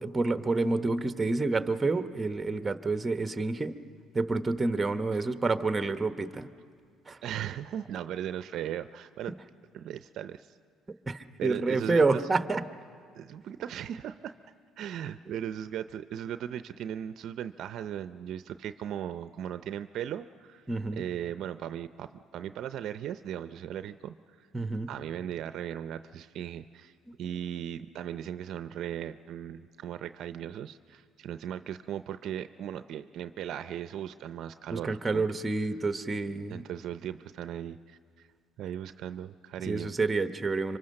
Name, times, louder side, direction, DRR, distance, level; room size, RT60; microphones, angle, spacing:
voice 1, 0.0-3.8 4.1-6.5 7.1-7.2 11.1-12.6 20.7-21.0 24.5-24.9 34.7-36.6 39.6-40.8, right 3 dB, 20° right, 9 dB, 1.1 m, -28 dB
voice 2, 7.2-9.3 9.7-10.5 11.4-12.2 13.1-14.3 14.8-20.6 20.9-24.5 24.9-26.9 27.2-35.2 36.3-38.3 38.6-39.9, right 10 dB, 65° right, 11 dB, 0.6 m, -37 dB
25.5 x 24.0 x 6.5 m, 2.2 s
supercardioid pair, 85°, 0 cm